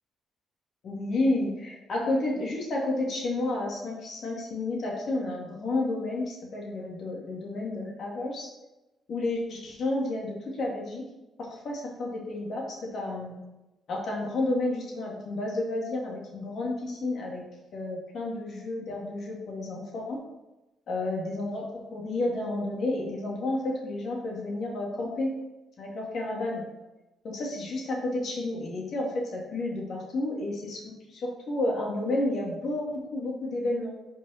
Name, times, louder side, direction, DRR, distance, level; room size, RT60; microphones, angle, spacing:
voice 1, 0.8-8.5 9.1-11.0 11.4-13.4 13.9-17.4 17.7-20.2 20.9-25.3 25.8-26.7 27.2-34.1, left 2 dB, 60° left, -2 dB, 2.1 m, -31 dB
5.5 x 5.4 x 5.6 m, 1.0 s
cardioid pair, 90°, 0 cm